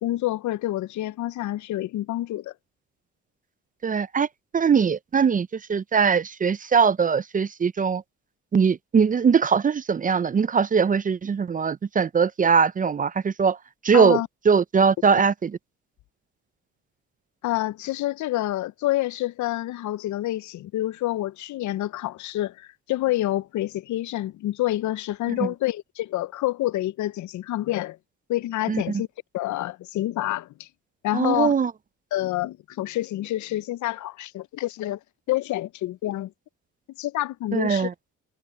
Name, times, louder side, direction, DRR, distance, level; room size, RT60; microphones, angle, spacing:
voice 1, 0.0-2.5 13.9-14.3 17.4-28.0 28.3-29.1 29.3-30.7 31.0-31.5 32.1-35.0 35.3-36.3 37.0-37.9, left 15 dB, 70° left, 0.6 m, -28 dB
voice 2, 3.8-4.3 4.5-8.0 8.5-13.6 13.8-14.2 14.5-15.6 28.7-29.0 31.1-31.7 37.5-37.9, right 6 dB, 25° right, 0.5 m, -21 dB
cardioid pair, 90°, 30 cm